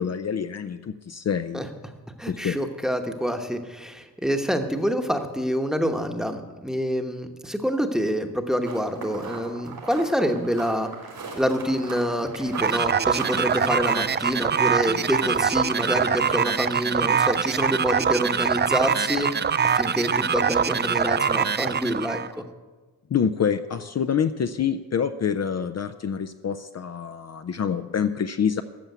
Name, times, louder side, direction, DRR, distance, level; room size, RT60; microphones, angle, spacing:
voice 1, 0.0-1.6 2.3-2.6 17.1-17.2 23.1-28.6, left 7 dB, 45° left, 9 dB, 0.5 m, -26 dB
voice 2, 1.5-1.9 2.2-10.9 11.4-19.3 19.6-22.4, equal, ahead, 5 dB, 1.0 m, -26 dB
sound 1, 8.6-16.1, right 4 dB, 80° right, 3.9 m, -39 dB
sound 2, 12.6-22.3, right 7 dB, 30° right, 0.4 m, -24 dB
14.0 x 7.1 x 9.2 m, 1.3 s
wide cardioid pair, 145°, 35 cm